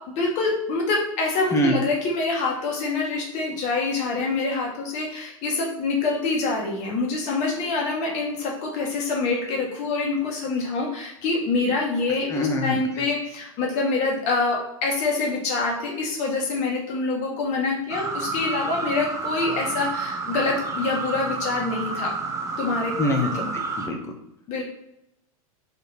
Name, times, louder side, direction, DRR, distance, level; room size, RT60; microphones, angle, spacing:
voice 1, 0.2-22.1 22.6-22.9 23.3-23.5 24.5-24.6, left 3 dB, 40° left, -1 dB, 1.9 m, -26 dB
voice 2, 12.3-13.0 23.0-24.0, left 1 dB, 15° left, 3 dB, 1.1 m, -24 dB
sound 1, 17.9-23.9, right 4 dB, 15° right, 0.7 m, -30 dB
5.0 x 4.4 x 4.2 m, 0.82 s
figure-of-eight pair, 95°, 18 cm